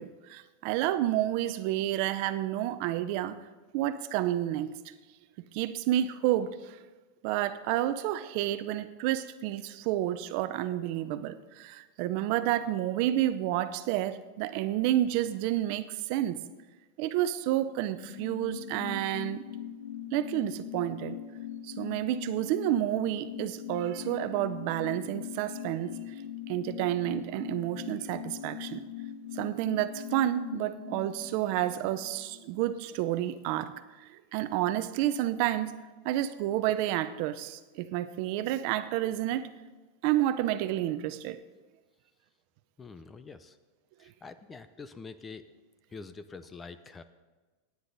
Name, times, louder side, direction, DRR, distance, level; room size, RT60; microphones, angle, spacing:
voice 1, 0.0-3.4 3.7-4.7 5.5-6.8 7.2-16.4 17.0-19.4 20.1-21.2 21.6-25.9 26.5-28.8 29.3-33.7 34.0-35.8 36.0-39.5 40.0-41.4, right 13 dB, 50° right, 12 dB, 0.6 m, -30 dB
sound 1, 17.6-32.8 33.1-33.2, left 9 dB, 50° left, 2.1 m, -41 dB
voice 2, 42.8-43.6 44.0-45.5 45.9-47.0, left 4 dB, 15° left, 12 dB, 0.5 m, -45 dB
16.0 x 9.6 x 4.0 m, 1.3 s
supercardioid pair, 160°, 0 cm